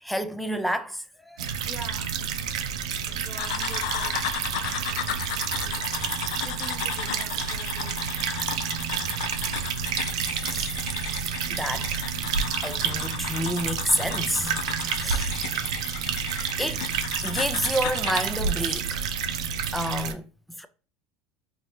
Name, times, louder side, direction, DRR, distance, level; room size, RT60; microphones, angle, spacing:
voice 1, 0.0-1.5 10.4-10.7 11.5-12.2 12.6-15.4 16.6-16.8 17.2-19.1 19.7-20.2 20.6-20.7, equal, ahead, 0.4 m, -29 dB
sound 1, 1.4-20.1, right 7 dB, 90° right, 0.5 m, -29 dB
voice 2, 1.5-2.5 2.9-4.2 4.5-6.1 6.4-8.0, right 2 dB, 15° right, 1.1 m, -45 dB
sound 2, 3.4-18.3, left 9 dB, 80° left, 0.4 m, -35 dB
4.1 x 2.8 x 3.1 m
supercardioid pair, 110°, 3 cm